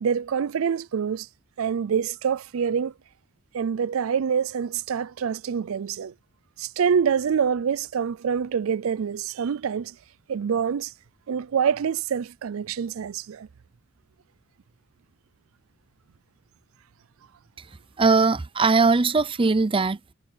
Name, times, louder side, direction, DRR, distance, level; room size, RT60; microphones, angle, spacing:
voice 1, 0.0-1.3 1.6-2.9 3.5-6.1 6.6-9.9 10.3-10.9 11.3-13.5, right 7 dB, 85° right, 0.4 m, -26 dB
voice 2, 18.0-20.1, right 4 dB, 25° right, 0.5 m, -20 dB
head